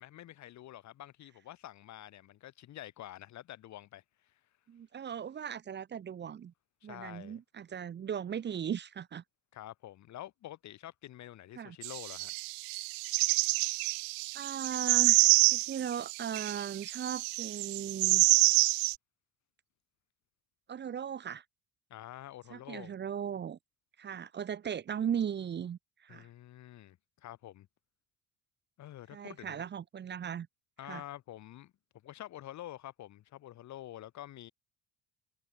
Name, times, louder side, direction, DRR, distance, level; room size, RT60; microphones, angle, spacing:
voice 1, 0.0-4.3 6.8-7.4 9.5-12.3 21.9-22.9 26.1-27.7 28.8-29.6 30.8-31.7 32.0-34.5, left 13 dB, 55° left, 7.8 m, -48 dB
voice 2, 4.7-6.5 6.8-9.2 11.6-11.8 13.4-13.6 14.3-18.2 20.7-21.4 22.5-23.6 24.0-26.3 29.1-30.5 30.8-31.0, right 8 dB, 30° right, 1.6 m, -38 dB
sound 1, 11.8-18.9, right 27 dB, 85° right, 0.5 m, -27 dB
cardioid pair, 155°, 34 cm